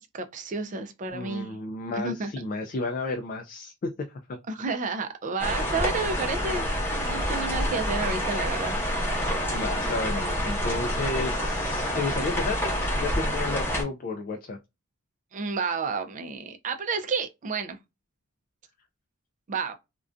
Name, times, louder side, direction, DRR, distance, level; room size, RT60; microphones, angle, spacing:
voice 1, 0.1-1.6 1.9-2.5 4.5-8.8 15.3-17.8 19.5-19.8, right 4 dB, 35° right, 0.4 m, -31 dB
voice 2, 1.1-4.4 9.5-12.6 12.9-14.6, left 3 dB, 40° left, 0.3 m, -32 dB
sound 1, 5.4-13.8, equal, 10° left, 0.8 m, -28 dB
2.4 x 2.2 x 2.4 m
head